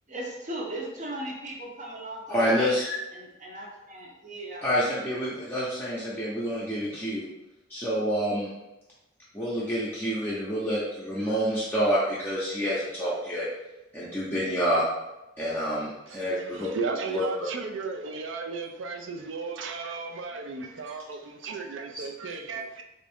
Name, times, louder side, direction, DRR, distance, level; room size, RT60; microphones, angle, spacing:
voice 1, 0.1-2.8 3.1-4.6, right 1 dB, 40° right, 0.7 m, -37 dB
voice 2, 2.3-3.0 4.6-7.3 7.7-8.5 9.3-13.5 13.9-14.8 15.4-16.7 17.1-17.3 21.9-22.0, equal, 10° left, 0.6 m, -28 dB
voice 3, 16.1-22.8, right 4 dB, 75° right, 0.4 m, -35 dB
3.6 x 2.5 x 3.5 m
head